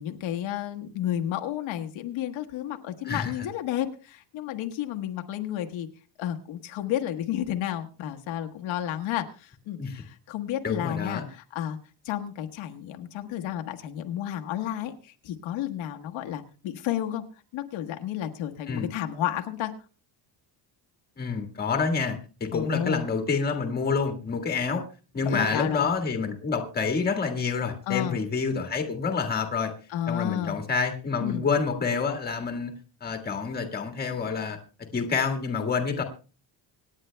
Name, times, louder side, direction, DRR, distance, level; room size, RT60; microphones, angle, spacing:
voice 1, 0.0-5.9 6.2-11.8 12.0-17.2 17.5-19.7 22.5-23.0 25.2-25.9 27.9-28.2 29.9-30.6 31.2-31.4, left 11 dB, 70° left, 4 dB, 1.3 m, -31 dB
voice 2, 3.0-3.5 9.8-10.0 10.6-11.2 18.7-18.9 21.2-24.8 25.1-29.7 30.1-32.7 33.0-34.6 34.9-36.0, left 5 dB, 20° left, 4 dB, 1.5 m, -28 dB
26.0 x 9.7 x 2.2 m, 0.35 s
cardioid pair, 170°, 48 cm